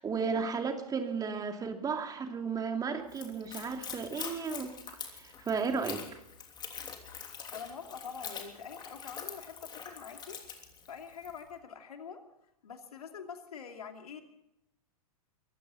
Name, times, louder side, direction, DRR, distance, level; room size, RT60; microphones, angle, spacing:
voice 1, 0.0-4.7 5.1-6.2, right 5 dB, 20° right, 5 dB, 2.5 m, -34 dB
Splash splatter / Trickle dribble, 3.1-11.4, left 7 dB, 20° left, 3.1 m, -45 dB
voice 2, 7.5-10.4 10.9-12.2 12.6-14.2, left 6 dB, 75° left, 5 dB, 2.6 m, -45 dB
24.0 x 14.5 x 4.1 m, 0.80 s
figure-of-eight pair, 105°, 19 cm